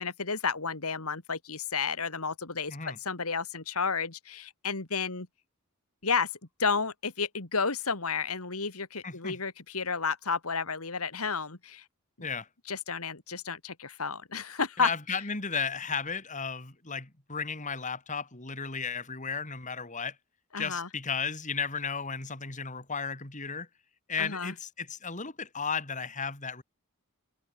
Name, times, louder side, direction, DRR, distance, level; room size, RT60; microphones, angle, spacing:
voice 1, 0.0-5.3 6.0-6.3 6.6-11.8 12.7-15.2 20.5-20.9 24.2-24.5, left 5 dB, 75° left, 2.6 m, -32 dB
voice 2, 9.0-9.4 12.2-12.5 14.8-20.2 20.6-23.7 24.1-26.6, left 5 dB, 35° left, 3.3 m, -34 dB
head